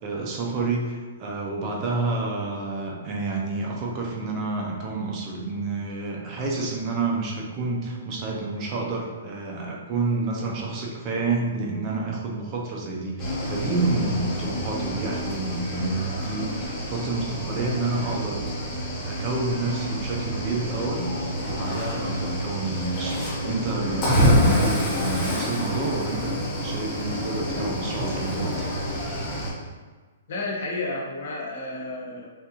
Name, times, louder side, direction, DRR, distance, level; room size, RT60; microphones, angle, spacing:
voice 1, 0.0-18.4 19.0-21.1 21.5-28.7, right 3 dB, 25° right, -1 dB, 0.5 m, -29 dB
Cricket / Waves surf, 13.2-29.5, equal, 20° left, 1.0 m, -27 dB
voice 2, 30.3-32.3, left 2 dB, 55° left, -3 dB, 0.9 m, -31 dB
3.5 x 2.5 x 2.8 m, 1.4 s
hypercardioid pair, 165°, 0 cm